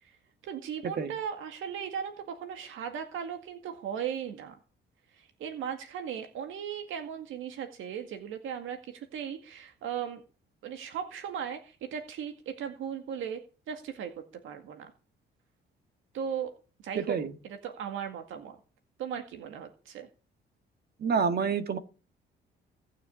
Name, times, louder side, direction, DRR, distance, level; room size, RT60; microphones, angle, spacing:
voice 1, 0.4-4.6 5.1-10.2 10.6-13.4 13.7-14.9 16.1-16.5 16.8-17.2 17.4-18.6 19.0-20.1, right 8 dB, 85° right, 6 dB, 2.0 m, -37 dB
voice 2, 17.0-17.3 21.0-21.8, right 6 dB, 55° right, 9 dB, 1.8 m, -28 dB
18.0 x 6.7 x 8.5 m, 0.36 s
cardioid pair, 90°, 20 cm